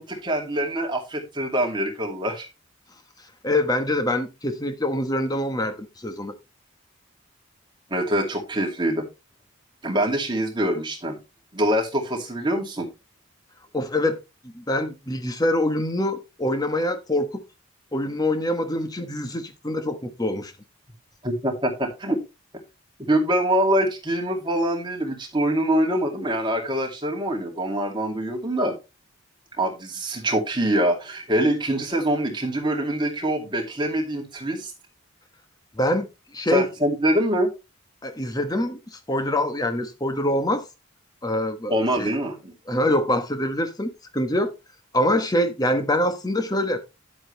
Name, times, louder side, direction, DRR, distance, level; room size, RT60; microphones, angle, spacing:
voice 1, 0.0-2.5 7.9-9.1 9.8-11.2 11.5-12.9 21.2-22.2 23.1-28.8 29.6-34.7 36.5-37.5 41.7-42.5, right 1 dB, 20° right, 2.4 m, -24 dB
voice 2, 3.4-6.3 13.7-14.2 14.4-17.4 17.9-20.5 35.8-36.1 36.3-36.7 38.0-40.6 41.2-42.1 42.7-44.5 44.9-46.8, left 1 dB, 20° left, 1.2 m, -25 dB
9.8 x 7.7 x 3.3 m
head